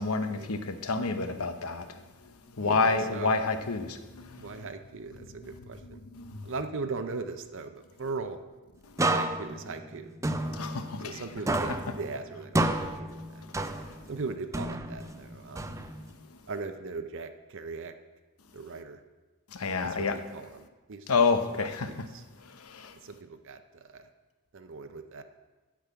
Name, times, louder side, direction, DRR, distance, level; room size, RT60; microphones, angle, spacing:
voice 1, 0.0-1.8 2.6-4.0 5.8-6.3 10.5-11.2 19.6-20.1 21.1-21.9, left 4 dB, 80° left, 8 dB, 0.9 m, -28 dB
voice 2, 2.6-3.3 4.4-6.0 6.4-8.4 9.0-10.1 11.0-13.4 14.1-15.7 16.5-17.9 18.5-19.0 19.8-21.1 21.4-22.2 23.0-24.1 24.5-25.2, right 4 dB, 60° right, 8 dB, 0.7 m, -39 dB
sound 1, 9.0-11.2 11.5-14.1 14.5-16.2, right 2 dB, 15° right, 0.4 m, -31 dB
8.6 x 6.2 x 8.1 m, 1.2 s
head